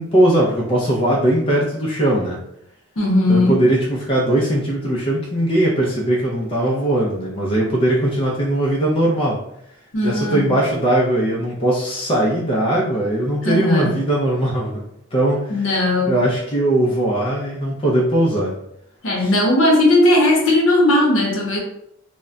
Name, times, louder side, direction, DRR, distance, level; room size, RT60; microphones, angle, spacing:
voice 1, 0.0-2.4 3.3-9.4 10.0-15.7 16.1-18.5 19.2-19.3, right 1 dB, 25° left, -4 dB, 0.4 m, -19 dB
voice 2, 3.0-3.6 9.9-10.5 13.4-14.0 15.5-16.2 19.0-21.6, left 1 dB, 65° left, 0 dB, 0.7 m, -17 dB
2.2 x 2.1 x 3.6 m, 0.76 s
head